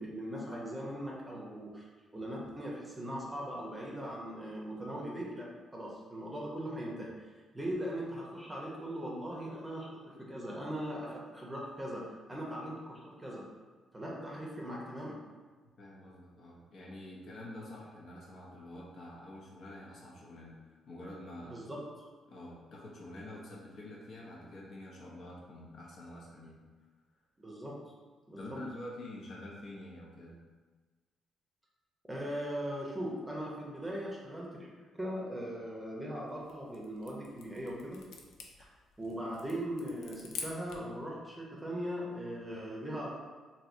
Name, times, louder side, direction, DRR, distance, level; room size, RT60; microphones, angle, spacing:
voice 1, 0.0-1.9 2.1-7.1 7.5-13.4 13.9-15.2 21.4-21.8 27.4-27.8 28.3-28.6 32.1-38.0 39.0-43.1, equal, 15° right, -3 dB, 0.7 m, -39 dB
voice 2, 15.8-21.6 22.3-26.6 28.4-30.4, left 1 dB, 60° left, -4 dB, 0.8 m, -47 dB
sound 1, 36.3-41.0, left 5 dB, 85° left, 0.4 m, -48 dB
3.0 x 2.8 x 2.6 m, 1.4 s
cardioid pair, 90°, 0 cm